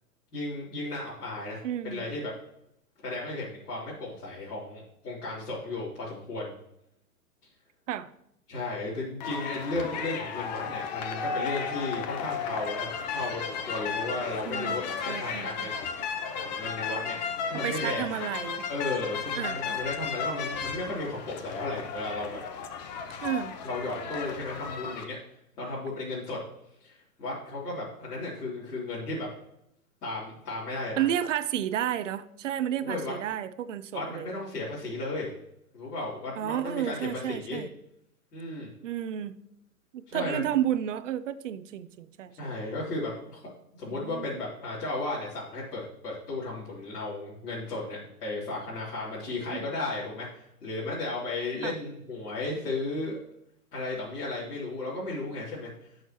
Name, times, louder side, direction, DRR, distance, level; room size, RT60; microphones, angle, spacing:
voice 1, 0.3-2.3 3.0-6.5 8.5-16.0 16.3-18.1 18.7-22.4 23.6-25.2 25.6-26.4 26.8-29.3 30.0-31.0 32.8-33.1 33.9-35.3 35.7-37.6 38.3-38.7 40.1-40.5 42.4-43.4 43.7-53.2 53.7-55.7, left 2 dB, 75° left, -8 dB, 3.7 m, -34 dB
voice 2, 1.6-2.0 7.9-8.1 14.5-14.8 15.1-15.7 17.6-18.6 19.3-19.6 23.2-23.5 31.0-34.3 36.4-37.7 38.8-39.4 39.9-42.5 43.9-44.3 49.5-49.7 51.6-51.7, right 11 dB, 50° right, 14 dB, 0.7 m, -31 dB
sound 1, 9.2-25.0, left 6 dB, 30° left, 0.7 m, -34 dB
12.0 x 6.6 x 3.1 m, 0.77 s
hypercardioid pair, 145°, 47 cm